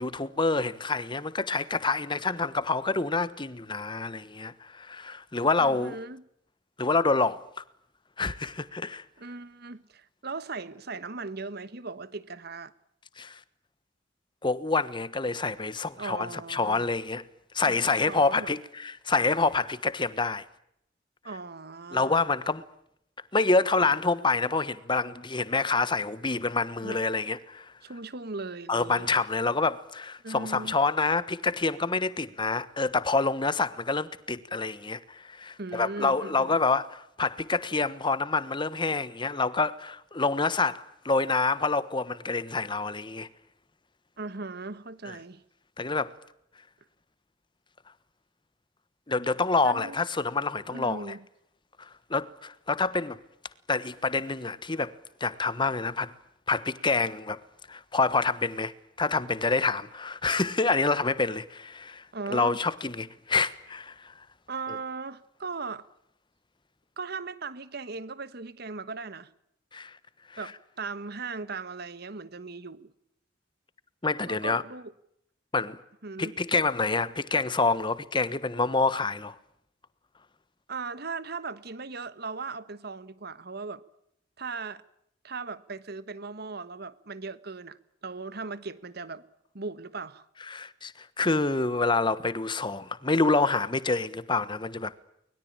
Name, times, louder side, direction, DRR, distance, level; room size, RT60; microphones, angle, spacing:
voice 1, 0.0-6.0 6.8-7.6 8.2-9.0 13.2-13.4 14.4-17.2 17.5-20.4 21.9-22.6 23.3-27.7 28.7-43.3 45.1-45.2 45.8-46.1 49.1-51.1 52.1-53.2 53.7-54.9 55.2-56.1 56.5-57.4 57.7-58.7 59.0-62.0 62.3-64.1 69.7-69.9 74.0-74.6 75.5-75.8 76.2-79.4 90.5-94.9, left 3 dB, 25° left, 1.2 m, -27 dB
voice 2, 5.6-6.3 9.2-12.7 16.0-16.9 17.7-17.8 18.1-18.6 21.2-22.2 26.8-27.0 27.8-29.1 30.2-30.7 35.6-36.6 44.2-45.4 49.6-50.0 50.7-51.2 62.1-62.6 64.5-65.9 67.0-69.3 70.4-72.9 74.3-74.9 76.0-76.4 80.7-83.8 84.4-84.8 85.2-87.8 88.0-89.2 89.5-90.2, right 4 dB, 55° right, 1.4 m, -38 dB
24.0 x 21.0 x 8.8 m
head